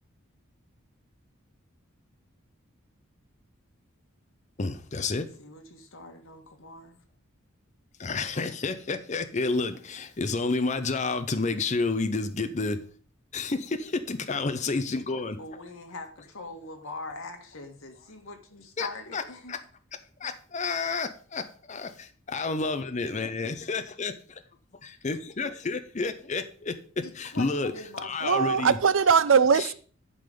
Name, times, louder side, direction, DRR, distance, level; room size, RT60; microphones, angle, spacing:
voice 1, 4.6-5.3 8.0-12.8 13.3-15.4 18.8-19.2 19.5-19.6 20.2-24.4 24.8-27.7 28.0-28.8 29.5-29.7, left 3 dB, 35° left, 0.6 m, -30 dB
voice 2, 5.4-7.0 15.4-19.5 27.0-28.5, left 2 dB, 80° left, 1.8 m, -42 dB
voice 3, 28.2-29.7, right 6 dB, 70° right, 0.6 m, -21 dB
11.0 x 3.9 x 6.7 m
head